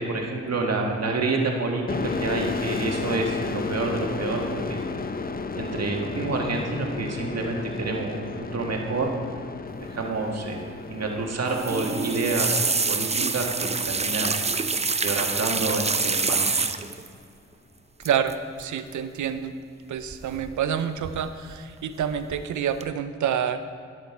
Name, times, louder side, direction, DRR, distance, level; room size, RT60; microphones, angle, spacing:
voice 1, 0.0-4.8 5.6-9.1 9.8-12.6 12.9-14.3 15.0-16.7, right 3 dB, 60° right, 1 dB, 1.8 m, -28 dB
sound 1, 1.9-15.3, left 4 dB, 30° left, 0.7 m, -34 dB
sound 2, 11.5-17.1 18.0-18.3 18.6-18.9 20.1-20.7 21.0-21.6 22.0-22.4 22.8-22.9, right 4 dB, 20° right, 0.6 m, -26 dB
voice 2, 18.0-19.5 19.9-23.6, right 8 dB, 75° right, 11 dB, 0.7 m, -28 dB
10.5 x 9.4 x 4.6 m, 2.3 s
supercardioid pair, 40°, 29 cm